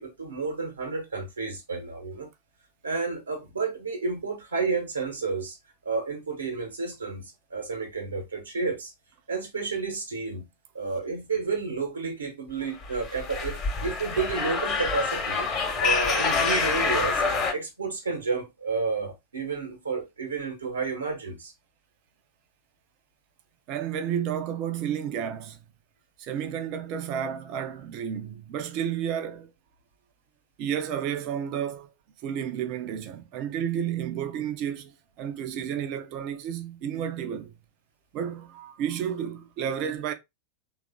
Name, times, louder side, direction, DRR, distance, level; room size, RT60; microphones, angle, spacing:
voice 1, 0.0-2.3 2.8-5.6 5.8-8.9 9.3-10.5 10.7-15.5 15.8-17.2 17.5-21.5, right 4 dB, 75° right, 1.0 m, -31 dB
sound 1, 12.8-17.5, left 4 dB, 30° left, 1.1 m, -26 dB
voice 2, 23.7-25.6 26.2-29.5 30.6-31.9 32.2-37.5 38.1-40.1, right 9 dB, 40° right, 0.5 m, -31 dB
3.3 x 2.5 x 3.5 m
figure-of-eight pair, 90°, 0 cm